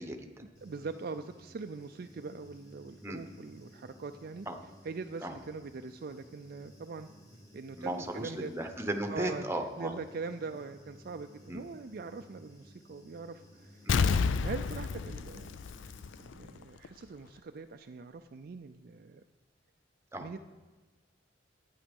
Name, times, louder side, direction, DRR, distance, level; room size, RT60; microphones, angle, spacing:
voice 1, 0.0-0.5 3.0-3.2 4.5-4.6 5.2-5.3 7.8-9.9 11.5-11.6 13.8-14.0 20.1-20.3, right 1 dB, 15° right, 5 dB, 1.0 m, -36 dB
Human voice / Buzz, 0.5-16.3, equal, 20° left, 1.7 m, -57 dB
voice 2, 0.6-4.5 4.8-7.1 7.5-8.5 9.1-9.4 9.8-15.5 15.8-19.2 20.2-20.4, right 4 dB, 50° right, 7 dB, 0.4 m, -42 dB
Explosion, 13.9-16.5 16.8-16.9, left 5 dB, 85° left, 0.4 m, -30 dB
11.5 x 9.2 x 5.3 m, 1.3 s
head